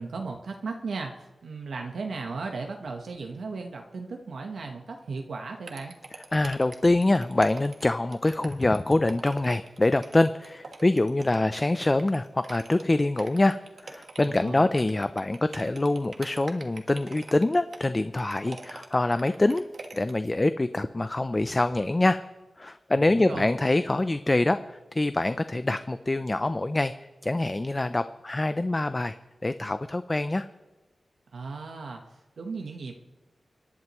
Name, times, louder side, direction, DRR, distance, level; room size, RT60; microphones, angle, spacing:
voice 1, 0.0-5.9 14.2-14.7 23.1-23.5 31.3-32.0 32.4-32.9, right 4 dB, 85° right, 2 dB, 1.1 m, -36 dB
sound 1, 5.7-20.3, right 3 dB, 65° right, 1.4 m, -45 dB
voice 2, 6.3-13.6 13.8-19.6 19.9-22.2 22.6-26.9 27.2-29.2 29.4-30.5, left 2 dB, 25° left, 11 dB, 0.4 m, -25 dB
26.5 x 11.0 x 3.1 m, 1.2 s
wide cardioid pair, 85°, 0 cm